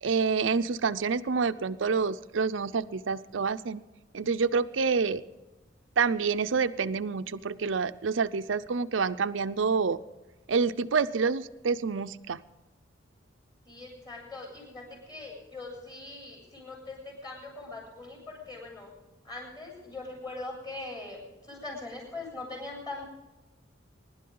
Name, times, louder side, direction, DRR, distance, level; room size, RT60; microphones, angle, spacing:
voice 1, 0.0-3.8 4.1-5.2 6.0-10.0 10.5-12.4, right 5 dB, 85° right, 11 dB, 0.6 m, -27 dB
voice 2, 13.7-18.9 19.2-23.1, left 2 dB, 20° left, -1 dB, 7.1 m, -41 dB
25.0 x 11.5 x 3.9 m, 1.1 s
head